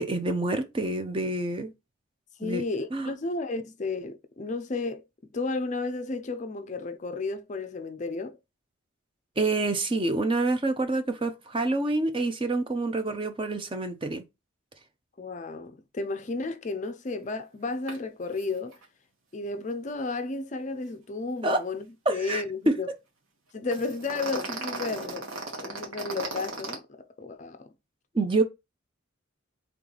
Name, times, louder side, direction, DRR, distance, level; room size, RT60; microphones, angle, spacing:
voice 1, 0.0-1.7 2.4-2.6 2.9-3.1 9.4-14.2 21.4-21.6 22.1-22.8 28.1-28.4, right 2 dB, 25° right, 0.6 m, -27 dB
voice 2, 2.4-5.0 5.3-8.4 15.2-18.8 19.3-22.9 23.5-25.3 25.6-27.7, left 3 dB, 35° left, 0.4 m, -33 dB
sound 1, 17.9-18.0 18.3-18.5 18.7-18.8 23.7-26.8, right 3 dB, 80° right, 1.5 m, -36 dB
3.5 x 3.2 x 3.9 m
head